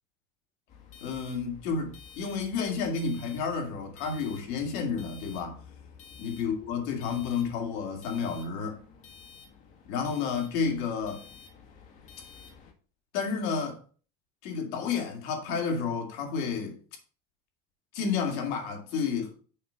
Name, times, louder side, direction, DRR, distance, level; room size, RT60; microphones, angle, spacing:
sound 1, 0.7-12.7, left 6 dB, 40° left, 1.8 m, -51 dB
voice 1, 1.0-5.6 6.2-8.8 9.9-11.2 13.1-13.8 14.4-16.8 17.9-19.3, left 5 dB, 65° left, 2.6 m, -31 dB
6.6 x 5.4 x 5.8 m
cardioid pair, 160°, 18 cm